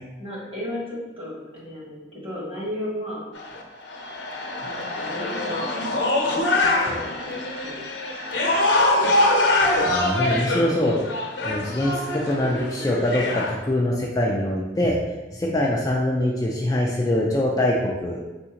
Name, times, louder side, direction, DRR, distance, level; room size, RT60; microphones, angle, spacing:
voice 1, 0.2-3.2 4.6-5.6 6.5-7.8 8.3-8.5, left 1 dB, 30° right, -4 dB, 1.2 m, -34 dB
sound 1, 3.3-13.5, left 2 dB, 75° left, 0.8 m, -24 dB
voice 2, 9.9-11.0 11.4-15.0 15.3-18.2, left 1 dB, 20° left, -2 dB, 0.4 m, -23 dB
4.1 x 3.6 x 2.9 m, 1.1 s
head